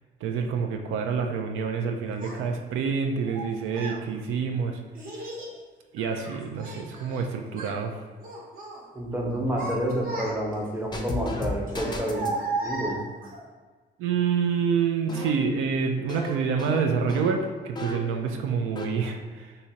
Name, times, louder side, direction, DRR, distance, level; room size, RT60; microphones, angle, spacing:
voice 1, 0.2-4.8 5.2-5.3 5.9-7.9 14.0-19.5, right 6 dB, 85° right, 4 dB, 0.4 m, -27 dB
Child speech kid speaking, 2.2-2.4 3.3-4.0 4.9-5.5 6.0-7.2 7.5-7.8 8.2-8.8 9.3-10.7 11.7-13.4, right 3 dB, 45° right, 0.9 m, -35 dB
voice 2, 8.9-13.0, right 1 dB, 10° right, -2 dB, 0.8 m, -29 dB
sound 1, 10.9-12.4 15.1-18.2 18.5-18.9, left 2 dB, 20° left, 0.5 m, -35 dB
2.8 x 2.7 x 4.2 m, 1.4 s
cardioid pair, 90°, 20 cm